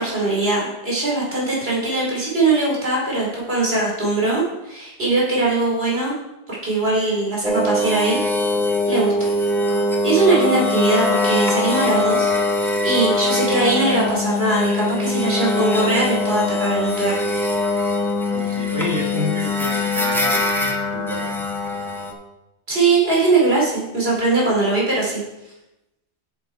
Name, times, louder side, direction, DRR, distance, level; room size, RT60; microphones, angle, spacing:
voice 1, 0.0-6.1 6.5-8.5 8.9-9.3 10.0-17.1 22.7-25.2, right 2 dB, 60° right, -4 dB, 3.2 m, -21 dB
sound 1, 7.4-22.1, left 2 dB, ahead, 0.7 m, -22 dB
voice 2, 18.3-21.4, left 1 dB, 15° right, 0 dB, 1.3 m, -30 dB
7.7 x 6.9 x 4.6 m, 0.93 s
omnidirectional pair, 1.2 m